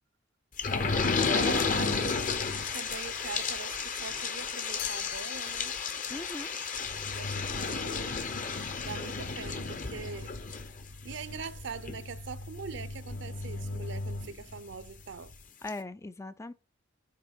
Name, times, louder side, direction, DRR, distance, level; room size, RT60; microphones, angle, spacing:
sound 1, 0.6-14.9 15.3-15.4 15.7-15.8, left 4 dB, 45° left, 0.9 m, -33 dB
voice 1, 0.7-1.1 6.1-6.5 15.6-16.5, left 2 dB, 15° left, 0.3 m, -40 dB
voice 2, 1.3-2.3 2.7-5.7 7.1-8.2 8.8-10.4 11.0-15.3, right 5 dB, 65° right, 0.6 m, -42 dB
Chime, 4.8-10.6, left 12 dB, 60° left, 0.6 m, -47 dB
6.6 x 4.4 x 5.2 m
head